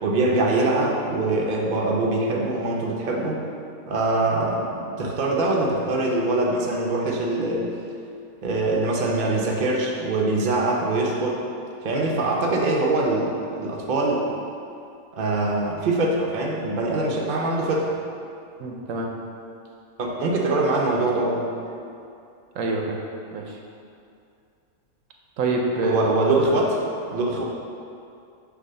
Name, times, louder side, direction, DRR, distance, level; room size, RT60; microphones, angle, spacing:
voice 1, 0.0-3.4 3.9-7.7 8.4-11.4 11.8-14.3 15.1-17.9 20.0-21.5 25.8-26.8 27.1-27.4, right 2 dB, 45° right, -2 dB, 0.7 m, -23 dB
voice 2, 18.6-19.1 22.6-23.0 23.3-23.6 25.4-26.0, right 2 dB, 75° right, 0 dB, 1.0 m, -26 dB
6.4 x 2.7 x 5.5 m, 2.5 s
omnidirectional pair, 1.4 m